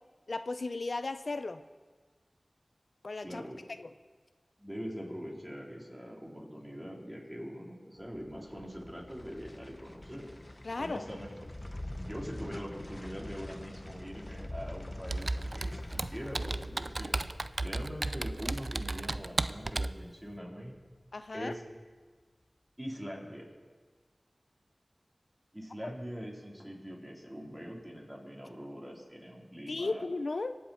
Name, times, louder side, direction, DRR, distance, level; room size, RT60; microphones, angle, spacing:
voice 1, 0.3-1.6 3.0-3.4 3.8-3.9 10.6-11.1 21.1-21.5 29.7-30.6, left 3 dB, 75° left, 10 dB, 0.5 m, -35 dB
voice 2, 3.2-3.6 4.6-10.3 10.8-11.3 12.0-17.3 17.6-20.8 21.3-21.6 22.8-23.5 25.5-30.0, equal, 15° right, -2 dB, 3.6 m, -43 dB
sound 1, 8.0-21.2 21.5-21.6, left 1 dB, 30° left, 0.7 m, -46 dB
Computer keyboard, 15.1-20.0, right 2 dB, 60° right, 0.4 m, -34 dB
24.5 x 8.3 x 4.4 m, 1.4 s
wide cardioid pair, 40°, 0 cm